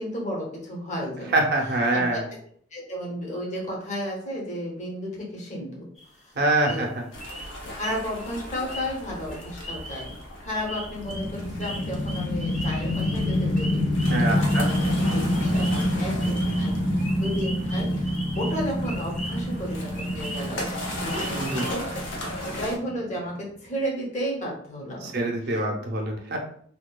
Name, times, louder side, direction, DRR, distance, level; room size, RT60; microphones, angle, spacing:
voice 1, 0.0-1.4 1.9-2.0 2.7-5.9 6.2-6.3 6.7-6.9 7.7-10.1 10.4-13.9 14.2-14.7 15.1-16.7 17.2-21.9 22.4-25.3 25.5-25.6, equal, 40° left, -2 dB, 0.7 m, -33 dB
voice 2, 1.3-2.2 6.3-7.0 14.1-14.7 21.4-21.7 25.0-26.4, right 2 dB, 55° right, 1 dB, 0.6 m, -25 dB
sound 1, 6.0-6.1 6.6-6.9 7.2-19.6 19.9-20.7 21.1-21.7, equal, ahead, 0.4 m, -40 dB
sound 2, 7.1-22.8, left 1 dB, 80° left, 0.6 m, -37 dB
sound 3, 11.1-23.3, left 1 dB, 65° left, 1.0 m, -27 dB
2.8 x 2.2 x 2.2 m, 0.62 s
head